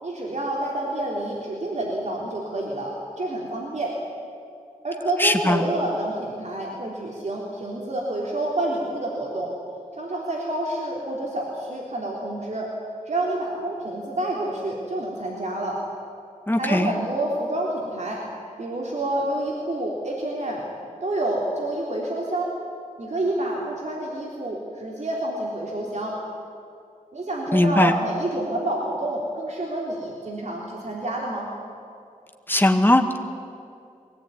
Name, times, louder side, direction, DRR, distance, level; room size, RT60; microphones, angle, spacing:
voice 1, 0.0-3.9 4.8-9.5 10.0-12.7 13.1-15.8 16.6-18.2 18.6-20.7 21.0-22.5 23.0-26.2 27.1-31.5, right 1 dB, 55° right, -3 dB, 3.8 m, -28 dB
voice 2, 5.2-5.6 16.5-16.9 27.5-27.9 32.5-33.2, left 1 dB, 15° left, 4 dB, 2.0 m, -19 dB
23.0 x 18.0 x 9.6 m, 2.5 s
wide cardioid pair, 80°, 14 cm